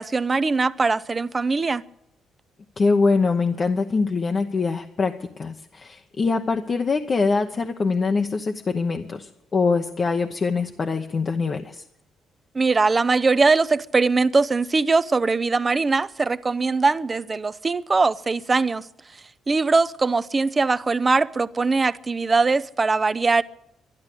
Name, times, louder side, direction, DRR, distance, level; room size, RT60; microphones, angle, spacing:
voice 1, 0.0-1.8 12.5-18.8 19.5-23.4, right 4 dB, 30° right, 0.6 m, -21 dB
voice 2, 2.8-11.8, left 4 dB, 40° left, 0.9 m, -23 dB
12.0 x 12.0 x 8.4 m
cardioid pair, 90°, 0 cm